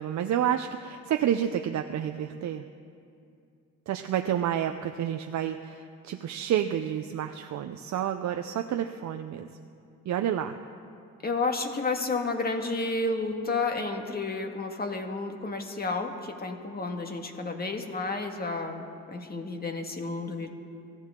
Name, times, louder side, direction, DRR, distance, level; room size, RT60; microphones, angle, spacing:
voice 1, 0.0-2.6 3.9-9.5 10.1-10.6, right 10 dB, 65° right, 6 dB, 0.7 m, -29 dB
voice 2, 11.2-20.5, left 3 dB, 30° left, 4 dB, 1.8 m, -31 dB
24.0 x 15.0 x 3.8 m, 2.5 s
cardioid pair, 90°, 30 cm